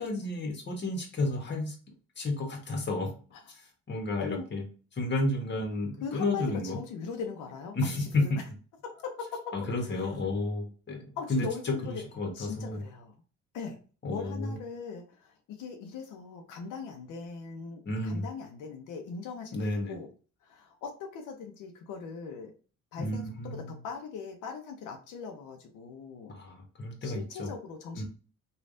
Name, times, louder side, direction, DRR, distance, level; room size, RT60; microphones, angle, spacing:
voice 1, 0.0-1.7 2.2-3.1 3.5-4.6 4.9-6.8 7.7-8.4 9.5-12.8 14.0-14.6 17.8-18.3 19.5-20.0 23.0-23.8 26.3-27.5 27.9-28.0, left 2 dB, 35° left, 2 dB, 1.1 m, -32 dB
voice 2, 4.2-4.5 6.0-8.4 8.8-9.5 9.8-10.1 11.2-12.1 12.3-13.2 13.5-13.8 14.0-20.1 20.4-22.5 22.9-26.3 27.0-28.0, left 5 dB, 85° left, 2 dB, 0.6 m, -40 dB
3.2 x 2.4 x 2.5 m, 0.37 s
cardioid pair, 90°, 30 cm